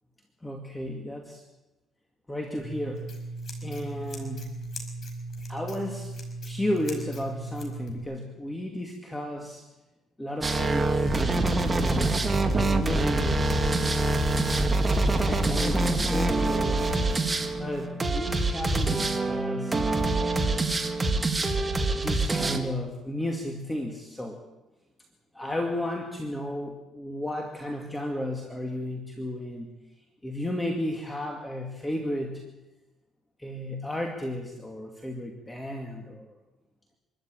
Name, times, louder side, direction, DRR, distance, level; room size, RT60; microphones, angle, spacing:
voice 1, 0.4-1.4 2.3-3.1 3.6-4.6 5.5-6.1 6.4-9.6 10.2-11.1 11.7-12.1 12.5-13.6 15.2-17.0 17.5-20.7 21.9-24.4 25.3-29.7 30.2-32.4 33.4-36.3, left 1 dB, 10° left, 1 dB, 2.4 m, -33 dB
Scissors, 2.6-8.0, right 2 dB, 40° left, 5.5 m, -37 dB
sound 1, 10.4-22.6, right 2 dB, 20° right, 2.0 m, -25 dB
26.0 x 13.5 x 9.0 m, 1.0 s
cardioid pair, 130°, 0 cm